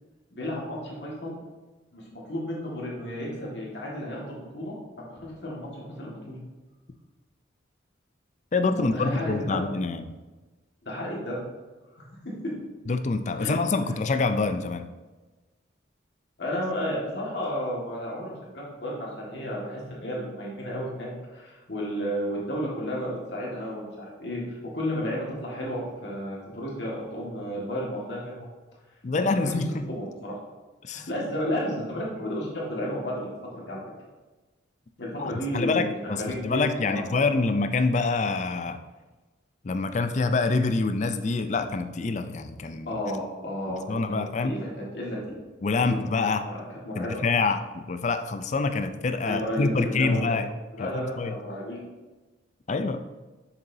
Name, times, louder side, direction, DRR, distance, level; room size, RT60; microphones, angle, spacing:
voice 1, 0.3-1.4 1.9-6.4 8.8-9.6 10.8-11.4 13.4-13.5 16.4-28.5 29.2-30.4 30.9-33.8 35.0-37.5 42.9-45.2 45.9-46.0 46.4-47.1 49.2-50.4 50.7-51.8, equal, 60° left, -4 dB, 1.8 m, -33 dB
voice 2, 8.5-10.1 12.9-14.9 29.0-29.9 30.8-31.1 35.2-38.8 39.6-42.9 43.9-44.6 45.6-46.4 47.0-50.5 50.8-51.4 52.7-53.0, left 3 dB, 40° left, 9 dB, 0.4 m, -26 dB
6.9 x 6.9 x 2.7 m, 1.2 s
head